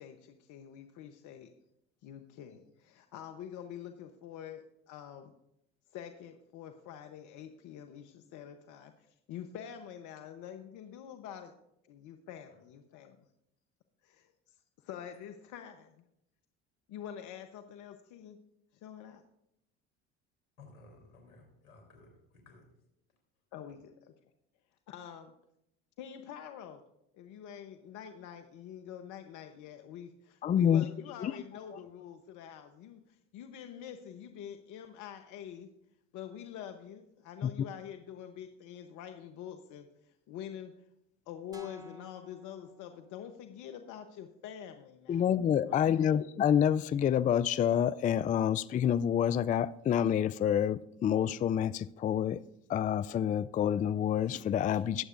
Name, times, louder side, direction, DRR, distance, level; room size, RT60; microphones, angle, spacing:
voice 1, 0.0-1.5 2.0-5.3 5.9-11.5 11.9-13.2 14.0-16.0 16.9-18.4 18.7-19.2 23.5-24.1 24.9-25.3 26.0-26.8 27.1-35.7 36.1-40.7 41.3-45.4 45.7-46.2, left 9 dB, 60° left, 1.0 m, -46 dB
voice 2, 20.6-22.7, left 2 dB, 85° left, 3.7 m, -57 dB
voice 3, 30.4-30.8 31.2-31.3 37.4-37.5 45.1-52.4 52.7-55.0, left 9 dB, 25° left, 0.3 m, -28 dB
sound 1, 41.5-43.6, left 2 dB, 10° right, 2.3 m, -53 dB
21.0 x 7.9 x 2.6 m
hypercardioid pair, 70°, 34 cm